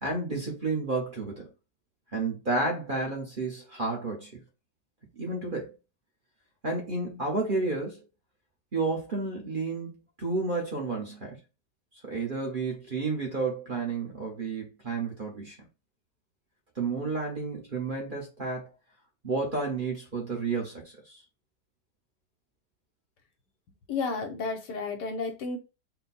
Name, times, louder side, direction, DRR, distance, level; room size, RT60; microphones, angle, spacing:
voice 1, 0.0-1.5 2.1-4.3 5.2-5.7 6.6-8.0 8.7-11.4 12.0-15.6 16.8-18.7 19.2-21.2, right 3 dB, 35° right, 1.0 m, -31 dB
voice 2, 23.9-25.6, left 4 dB, 80° left, 1.5 m, -32 dB
4.3 x 2.2 x 4.0 m
omnidirectional pair, 1.8 m